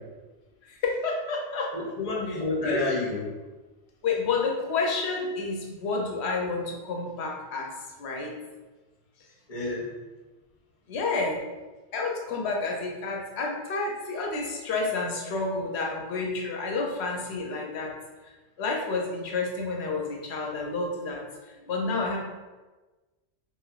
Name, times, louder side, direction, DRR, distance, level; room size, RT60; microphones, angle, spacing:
voice 1, 0.8-1.7 2.6-2.8 4.0-7.7 8.0-8.4 10.9-11.4 11.9-17.9 18.6-21.2 21.7-22.2, left 3 dB, 75° left, 0 dB, 0.9 m, -29 dB
voice 2, 1.7-3.3 9.5-9.9, left 2 dB, 40° left, -4 dB, 0.7 m, -29 dB
3.1 x 2.9 x 2.4 m, 1.2 s
omnidirectional pair, 1.1 m